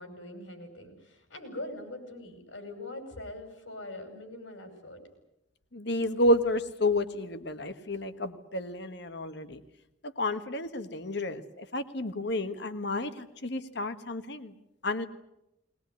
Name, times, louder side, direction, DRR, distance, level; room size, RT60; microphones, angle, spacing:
voice 1, 0.0-5.0, left 1 dB, 80° left, 6 dB, 5.9 m, -42 dB
voice 2, 5.7-9.6 10.2-14.5 14.8-15.1, left 1 dB, 60° left, 10 dB, 1.5 m, -30 dB
21.0 x 20.0 x 9.6 m, 0.87 s
head